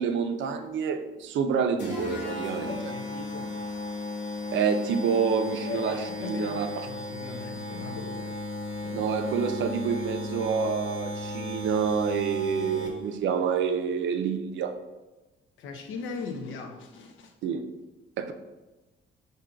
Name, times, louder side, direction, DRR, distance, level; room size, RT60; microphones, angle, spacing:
voice 1, 0.0-2.9 4.5-6.7 8.9-14.7 17.4-17.6 18.2-18.3, right 6 dB, 70° right, 7 dB, 0.5 m, -28 dB
sound 1, 1.8-13.2, left 2 dB, 65° left, 1.2 m, -35 dB
voice 2, 2.5-3.6 5.7-6.6 6.8-8.4 8.8-9.1 15.6-17.3, left 5 dB, 80° left, 5 dB, 0.6 m, -39 dB
4.4 x 2.7 x 3.7 m, 1.1 s
cardioid pair, 90°, 20 cm